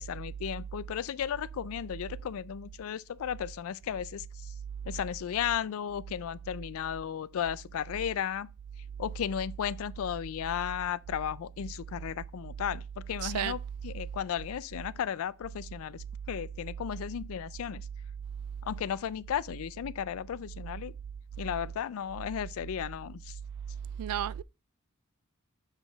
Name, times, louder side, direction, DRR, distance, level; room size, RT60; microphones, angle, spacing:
voice 1, 0.0-4.5 4.9-8.5 9.0-17.9 18.6-20.9 21.4-23.3, left 9 dB, 65° left, 0.3 m, -35 dB
voice 2, 13.2-13.6 24.0-24.4, right 10 dB, 80° right, 0.3 m, -32 dB
7.2 x 3.9 x 3.9 m
head